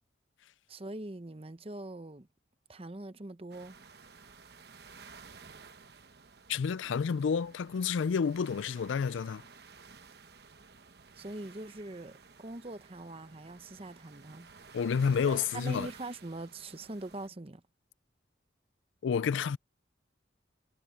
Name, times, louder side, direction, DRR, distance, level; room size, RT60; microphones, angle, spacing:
voice 1, 0.7-2.3 2.7-3.8 11.2-12.1 12.4-14.5 15.3-17.6, right 2 dB, 30° right, 0.8 m, -42 dB
sound 1, 3.5-17.3, right 5 dB, 60° right, 1.0 m, -54 dB
voice 2, 6.5-9.4 14.7-15.9 19.0-19.6, left 6 dB, 85° left, 0.4 m, -29 dB
head